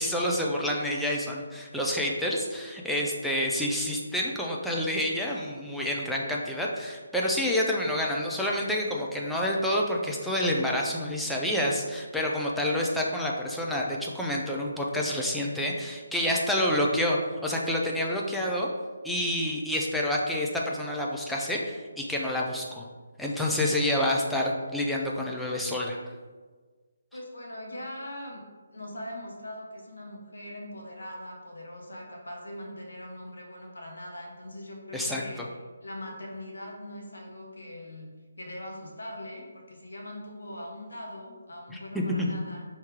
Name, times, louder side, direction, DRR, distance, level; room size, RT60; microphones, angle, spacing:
voice 1, 0.0-18.7 19.0-22.9 23.2-26.0 34.9-35.2 41.7-42.0, left 1 dB, ahead, -4 dB, 0.4 m, -28 dB
voice 2, 27.1-28.4 28.7-35.4 35.8-42.7, left 1 dB, 70° left, 0 dB, 0.8 m, -41 dB
3.5 x 2.8 x 4.7 m, 1.4 s
figure-of-eight pair, 145°, 0 cm